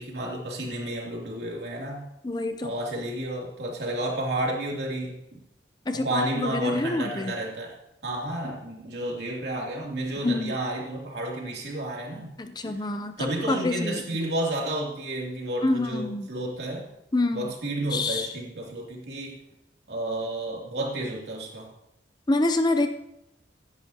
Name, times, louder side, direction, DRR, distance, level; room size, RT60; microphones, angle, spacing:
voice 1, 0.0-2.1 2.6-5.4 5.9-7.8 8.0-12.3 12.6-12.8 13.2-16.9 17.3-19.4 19.9-21.7, right 1 dB, 65° right, -2 dB, 2.9 m, -31 dB
voice 2, 2.2-2.7 5.9-7.3 10.2-10.6 12.4-14.0 15.6-16.3 17.1-17.5 17.9-18.3 22.3-22.9, left 2 dB, 20° left, 8 dB, 0.5 m, -27 dB
16.0 x 10.5 x 2.9 m, 0.87 s
head